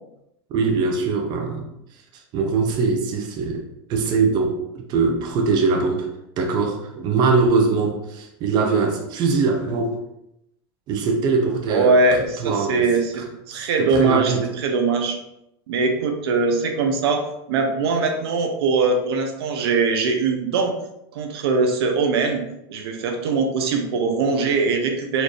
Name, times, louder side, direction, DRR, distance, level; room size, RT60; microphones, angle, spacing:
voice 1, 0.5-1.6 2.1-3.6 3.9-6.1 6.4-10.0 10.9-11.9 12.4-12.9 13.5-14.5, right 4 dB, 35° right, 2 dB, 0.6 m, -22 dB
voice 2, 11.7-13.1 13.5-15.2 15.7-17.2 17.5-20.7 21.1-22.4 22.7-25.2, right 4 dB, 75° right, 3 dB, 0.7 m, -21 dB
4.3 x 2.6 x 3.1 m, 0.82 s
supercardioid pair, 145°, 13 cm